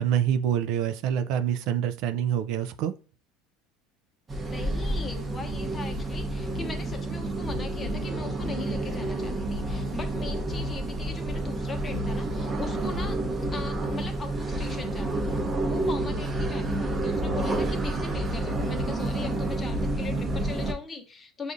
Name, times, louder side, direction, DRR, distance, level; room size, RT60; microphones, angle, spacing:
voice 1, 0.0-2.9, right 9 dB, 65° right, 9 dB, 0.3 m, -26 dB
voice 2, 4.3-13.2 13.5-21.5, left 4 dB, 25° left, 5 dB, 0.8 m, -40 dB
sound 1, 4.3-20.7, right 2 dB, 20° right, 0.8 m, -29 dB
6.6 x 2.4 x 2.5 m, 0.36 s
supercardioid pair, 115°, 0 cm